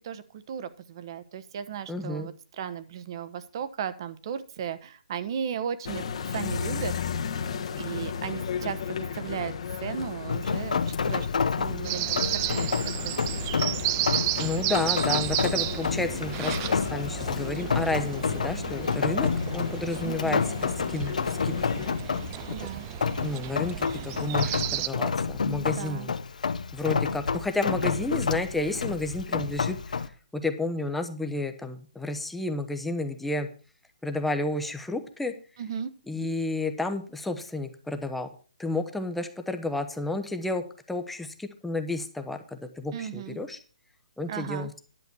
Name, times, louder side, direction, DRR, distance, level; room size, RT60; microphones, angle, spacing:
voice 1, 0.0-6.0 6.3-6.9 7.8-9.5 9.8-11.3 11.6-12.0 12.3-12.7 13.0-13.3 20.0-20.4 22.5-22.8 25.6-26.1 35.6-35.9 42.9-43.4 44.3-44.7, right 8 dB, 35° right, 14 dB, 1.0 m, -35 dB
voice 2, 1.9-2.3 14.4-21.8 23.2-26.1 26.7-33.5 34.0-35.3 36.1-38.3 38.6-43.6 44.2-44.8, left 2 dB, 5° left, 7 dB, 0.8 m, -31 dB
sound 1, 5.8-21.9, left 6 dB, 50° left, 1.3 m, -35 dB
Rain, 10.3-30.1, left 5 dB, 75° left, 1.0 m, -30 dB
sound 2, 11.8-24.9, right 15 dB, 20° right, 0.4 m, -33 dB
11.0 x 6.9 x 6.1 m, 0.38 s
hypercardioid pair, 165°, 4 cm